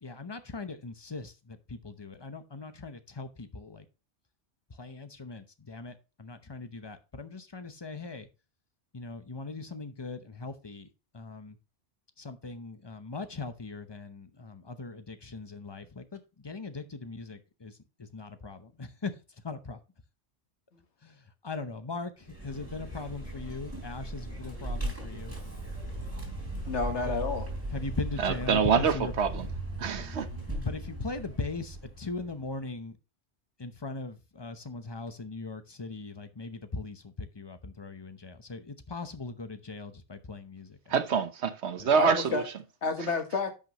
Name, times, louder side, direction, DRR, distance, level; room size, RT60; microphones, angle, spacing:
voice 1, 0.0-3.8 4.7-8.3 8.9-10.9 11.1-11.6 12.2-19.1 19.4-19.8 21.0-25.4 26.9-27.1 27.7-29.1 30.6-33.0 33.6-40.9 41.8-41.9, left 3 dB, 25° left, 0.8 m, -39 dB
Vehicle, 22.2-32.6, right 1 dB, 10° right, 3.2 m, -38 dB
voice 2, 26.7-27.5 42.0-42.5 42.8-43.5, left 4 dB, 80° left, 1.7 m, -30 dB
voice 3, 28.2-29.5 29.8-30.3 40.9-42.4, right 6 dB, 75° right, 1.2 m, -26 dB
10.5 x 6.2 x 3.0 m
omnidirectional pair, 1.2 m